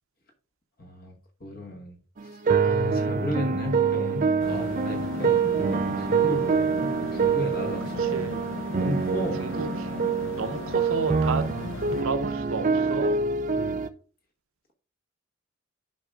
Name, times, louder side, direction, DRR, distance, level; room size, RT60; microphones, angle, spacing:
voice 1, 0.8-1.1 1.4-2.0 2.2-8.3 8.8-9.6 11.6-11.7 13.5-13.8, left 1 dB, 40° left, 1.2 m, -34 dB
sound 1, 2.2-13.9, right 5 dB, 35° right, 0.4 m, -25 dB
sound 2, 4.4-12.0, left 5 dB, 60° left, 0.4 m, -38 dB
voice 2, 8.0-8.4 9.4-10.0 10.4-11.5 12.0-13.2, right 4 dB, 70° right, 0.7 m, -32 dB
12.0 x 5.3 x 2.4 m
head